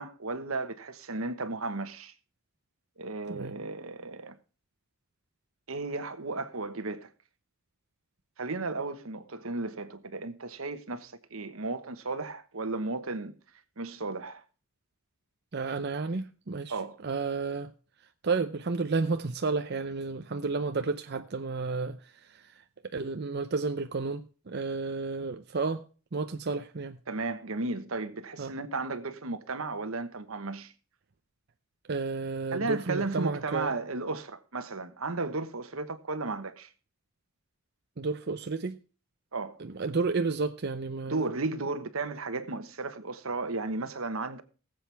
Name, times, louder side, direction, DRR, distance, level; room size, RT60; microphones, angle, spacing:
voice 1, 0.0-2.1 3.0-4.4 5.7-7.1 8.4-13.3 13.8-14.4 16.7-17.0 27.1-30.7 32.5-36.7 39.3-39.6 41.1-44.4, right 3 dB, 80° right, 1.2 m, -34 dB
voice 2, 15.5-16.7 17.0-17.7 18.2-22.0 22.9-25.8 26.1-27.0 28.4-28.5 31.9-33.7 38.0-38.8 39.8-41.2, right 4 dB, 50° right, 0.7 m, -31 dB
19.5 x 7.8 x 3.4 m
head